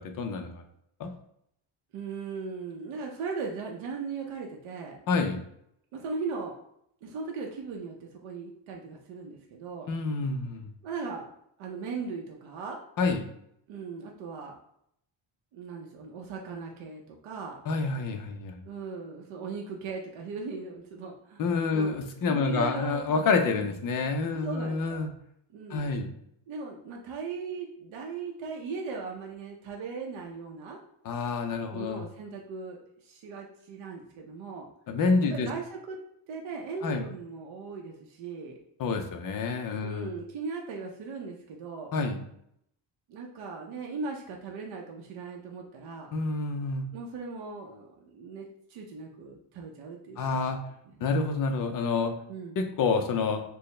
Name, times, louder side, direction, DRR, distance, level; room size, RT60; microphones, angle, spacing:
voice 1, 0.0-0.6 1.0-1.1 5.1-5.4 9.9-10.7 13.0-13.2 17.7-18.6 21.4-25.1 25.7-26.1 31.0-32.0 34.9-35.5 36.8-37.0 38.8-40.1 41.9-42.2 46.1-46.9 50.2-50.6 51.0-52.1 52.6-53.4, left 4 dB, 45° left, 5 dB, 0.5 m, -28 dB
voice 2, 1.9-5.0 5.9-6.5 7.0-9.9 10.8-11.3 11.6-12.8 13.7-14.5 15.5-17.6 18.6-21.4 21.7-23.7 24.4-25.0 25.5-25.9 26.5-30.8 31.7-34.7 35.2-36.0 36.3-38.6 39.8-41.9 43.1-46.1 46.9-50.5 50.8-50.9 52.3-52.6, right 4 dB, 70° right, 1 dB, 0.6 m, -38 dB
4.5 x 2.1 x 3.2 m, 0.73 s
cardioid pair, 170°, 50 cm